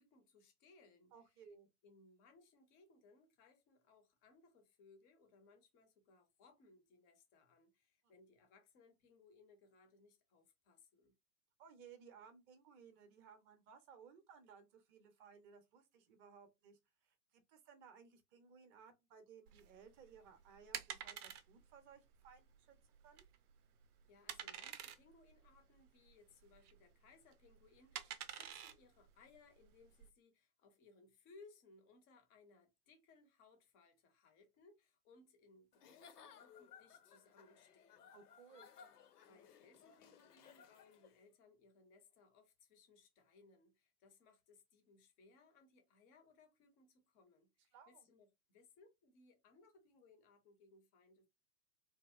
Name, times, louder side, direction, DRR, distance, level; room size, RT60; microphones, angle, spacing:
voice 1, 0.0-1.1 1.8-11.2 24.1-38.1 39.3-51.3, left 3 dB, 20° left, 0.4 m, -66 dB
voice 2, 1.1-1.7 8.0-8.1 11.6-22.8 23.0-23.3 38.1-38.7 47.7-48.1, right 6 dB, 25° right, 0.6 m, -61 dB
sound 1, 19.5-30.1, right 9 dB, 80° right, 0.5 m, -50 dB
Giggle / Chuckle chortle, 35.7-41.2, left 7 dB, 80° left, 0.6 m, -62 dB
2.7 x 2.0 x 2.4 m
hypercardioid pair, 110°, 46 cm